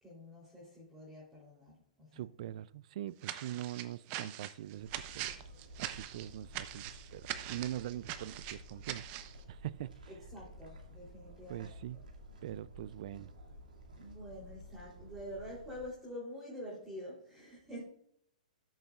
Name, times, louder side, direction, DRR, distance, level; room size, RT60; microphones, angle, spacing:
voice 1, 0.0-2.2 10.1-11.7 14.0-17.8, equal, 10° right, 3.4 m, -47 dB
voice 2, 2.1-5.4 5.8-9.1 9.5-10.0 11.5-12.1 12.4-13.3, right 13 dB, 55° right, 0.4 m, -43 dB
sound 1, 3.2-9.4, right 12 dB, 35° right, 0.8 m, -42 dB
sound 2, 4.8-15.9, equal, 90° right, 2.4 m, -53 dB
13.0 x 7.3 x 2.4 m
hypercardioid pair, 130°, 4 cm